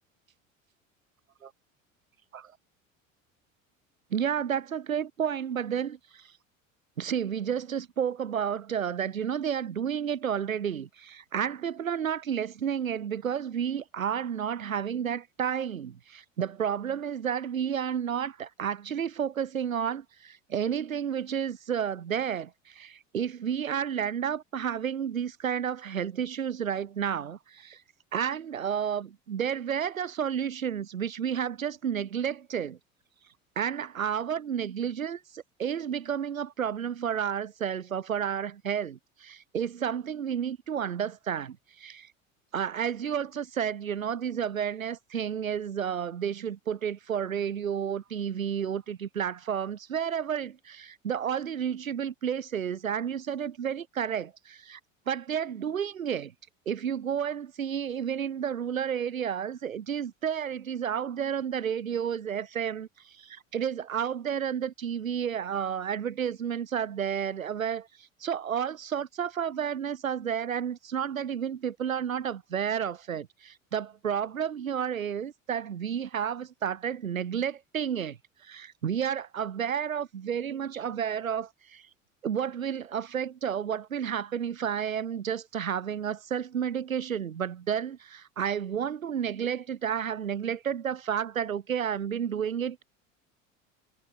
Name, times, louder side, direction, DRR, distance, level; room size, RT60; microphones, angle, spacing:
voice 1, 4.1-6.3 7.0-27.8 28.1-32.8 33.6-42.1 42.5-54.8 55.1-56.3 56.7-78.2 78.4-81.9 82.2-92.8, right 8 dB, 80° right, 2.2 m, -31 dB
figure-of-eight pair, 70°, 40 cm